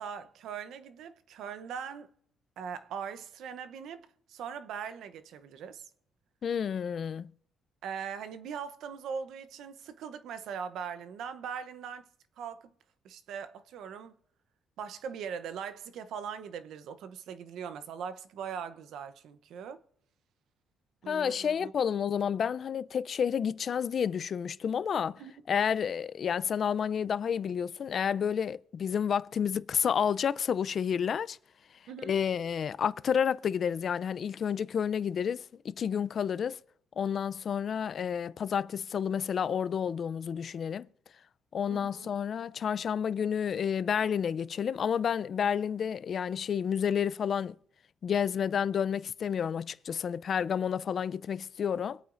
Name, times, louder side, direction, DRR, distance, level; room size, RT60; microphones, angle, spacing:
voice 1, 0.0-2.1 2.6-5.9 7.8-12.1 12.4-12.7 13.0-14.1 14.8-19.8 21.0-21.7 25.2-25.3 31.9-32.1 41.7-42.1, right 7 dB, 80° right, 0.8 m, -40 dB
voice 2, 6.4-7.3 21.1-25.2 25.5-31.4 32.0-36.6 37.0-40.9 41.5-47.6 48.0-52.0, left 7 dB, 55° left, 0.4 m, -30 dB
25.0 x 8.6 x 2.6 m
cardioid pair, 90°, 0 cm